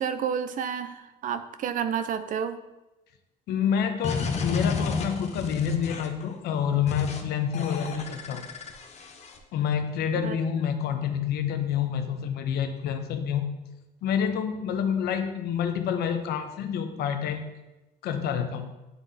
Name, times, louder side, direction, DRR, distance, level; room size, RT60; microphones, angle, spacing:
voice 1, 0.0-2.6 10.2-10.4, right 8 dB, 50° right, 10 dB, 0.5 m, -30 dB
voice 2, 3.5-8.5 9.5-13.4 14.0-17.5 18.0-18.7, left 8 dB, 70° left, 7 dB, 0.6 m, -28 dB
sound 1, 4.0-6.2 6.9-7.2 7.5-9.4, left 5 dB, 40° left, 0.7 m, -32 dB
9.5 x 3.8 x 2.7 m, 1.0 s
cardioid pair, 110°, 17 cm